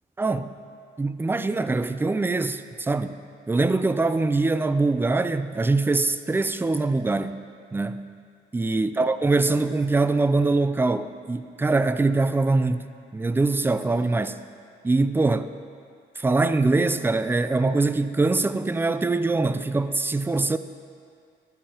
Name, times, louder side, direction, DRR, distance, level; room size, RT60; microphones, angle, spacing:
voice 1, 0.2-0.5 1.0-3.2 3.5-7.4 7.7-8.1 8.5-12.8 13.1-14.4 14.8-15.5 16.2-20.6, right 3 dB, 10° right, 0.4 m, -23 dB
12.5 x 11.5 x 2.9 m
cardioid pair, 90°, 20 cm